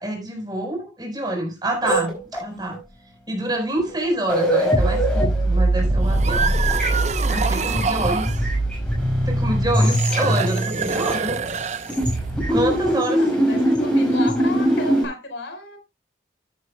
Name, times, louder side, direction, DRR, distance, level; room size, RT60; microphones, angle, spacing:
voice 1, 0.0-2.8 3.3-6.5 7.2-8.5 9.2-11.4 12.5-13.2, right 1 dB, 20° right, 4.4 m, -27 dB
sound 1, 1.8-2.8 3.8-3.9 4.2-11.6 11.9-15.0, right 1 dB, 5° left, 5.3 m, -21 dB
sound 2, 6.0-8.4 9.8-12.3, right 5 dB, 40° right, 0.7 m, -26 dB
voice 2, 13.2-15.8, left 1 dB, 85° left, 4.3 m, -34 dB
14.0 x 9.5 x 2.2 m
head